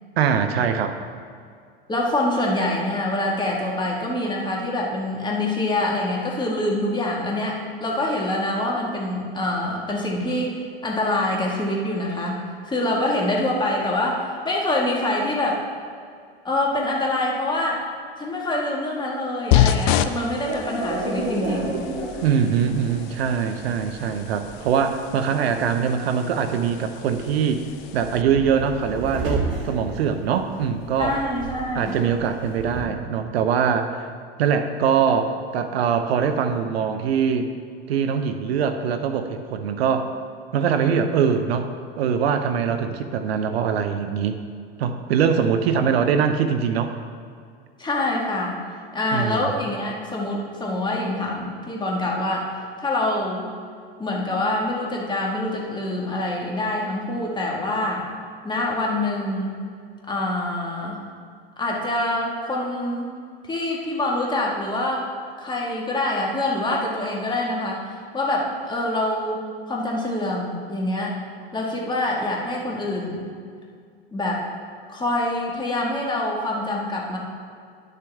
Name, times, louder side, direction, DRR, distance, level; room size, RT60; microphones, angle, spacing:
voice 1, 0.2-1.0 22.2-27.6 27.9-31.2 31.7-34.1 34.4-37.5 37.9-40.1 40.5-41.7 42.0-44.4 44.8-46.9 49.1-49.5, right 7 dB, 80° right, 8 dB, 0.7 m, -22 dB
voice 2, 1.9-15.7 16.4-17.9 18.2-21.8 31.0-31.9 47.8-48.5 48.9-52.5 52.8-53.5 54.0-58.1 58.4-59.6 60.1-61.0 61.6-63.1 63.5-65.1 65.4-67.8 68.1-69.4 69.7-71.2 71.5-73.3 74.1-74.4 74.9-77.2, left 1 dB, 15° left, -2 dB, 1.9 m, -25 dB
sound 1, 19.5-28.2, left 11 dB, 55° left, 0.5 m, -28 dB
sound 2, 20.5-32.8, right 2 dB, 40° right, 2.5 m, -33 dB
11.0 x 6.7 x 3.6 m, 2.2 s
hypercardioid pair, 100°, 31 cm